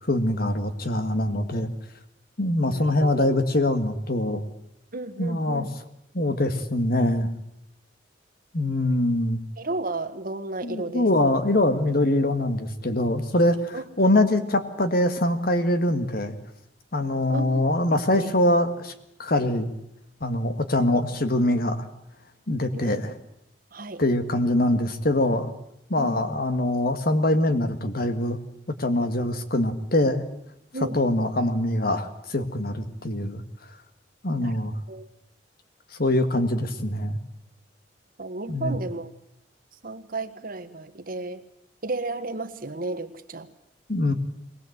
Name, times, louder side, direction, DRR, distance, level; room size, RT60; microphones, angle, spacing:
voice 1, 0.0-1.7 2.4-4.4 5.2-5.7 6.1-7.3 8.5-9.4 10.6-16.3 16.9-18.9 19.2-19.7 20.2-21.9 22.5-23.1 24.0-25.5 25.9-28.4 28.8-30.2 30.9-33.4 34.2-34.8 36.0-37.2 38.5-38.8 43.9-44.1, left 1 dB, 55° left, 9 dB, 1.8 m, -23 dB
voice 2, 2.7-3.4 4.9-5.7 9.6-11.1 13.7-13.8 17.3-17.6 18.1-18.3 22.7-23.1 23.7-24.0 26.0-26.4 30.7-31.0 34.4-35.1 38.2-39.1 39.8-41.4 41.8-43.5, right 2 dB, 55° right, 8 dB, 1.5 m, -33 dB
22.0 x 19.0 x 8.1 m, 0.79 s
head